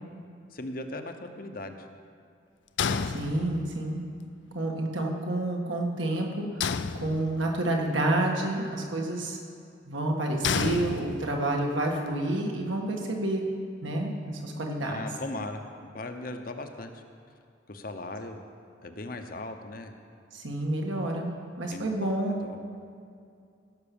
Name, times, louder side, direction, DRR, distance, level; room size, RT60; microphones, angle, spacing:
voice 1, 0.5-1.9 14.8-17.0 17.7-18.4 18.8-19.9 21.7-21.9 22.4-22.6, left 2 dB, 45° left, 6 dB, 0.8 m, -38 dB
sound 1, 2.8-3.9 6.6-7.6 10.4-11.6, left 6 dB, 65° left, 0.5 m, -30 dB
voice 2, 3.1-4.0 4.5-6.5 7.0-9.4 9.8-13.4 13.8-15.0 20.3-22.4, right 1 dB, 80° right, 0 dB, 1.8 m, -29 dB
16.5 x 6.1 x 7.0 m, 2.4 s
head